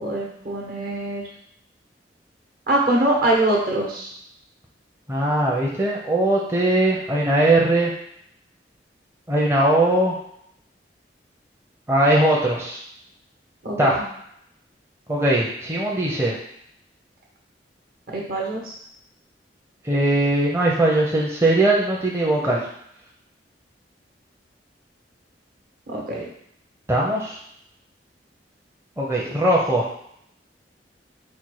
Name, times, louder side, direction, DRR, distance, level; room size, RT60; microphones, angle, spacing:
voice 1, 0.0-1.2 2.7-4.1 13.6-14.0 18.1-18.7 25.9-26.2, right 1 dB, 55° right, -2 dB, 1.1 m, -23 dB
voice 2, 5.1-7.9 9.3-10.2 11.9-12.8 13.8-14.0 15.1-16.3 19.8-22.7 26.9-27.4 29.0-29.9, right 1 dB, 15° right, -4 dB, 0.6 m, -20 dB
4.2 x 2.2 x 4.7 m, 0.71 s
head